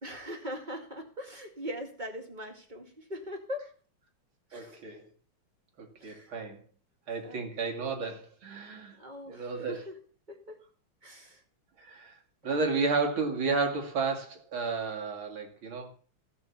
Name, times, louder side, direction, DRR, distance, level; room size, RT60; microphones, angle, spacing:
voice 1, 0.0-3.7 4.5-4.8 6.0-6.3 7.2-7.8 8.9-10.0 10.3-10.6 11.0-11.4 12.5-12.6, equal, 20° right, 2.3 m, -41 dB
voice 2, 4.5-5.0 5.8-6.6 7.1-8.9 9.3-9.8 11.8-12.2 12.4-15.9, right 4 dB, 70° right, 3.0 m, -32 dB
16.0 x 6.0 x 7.0 m
omnidirectional pair, 2.3 m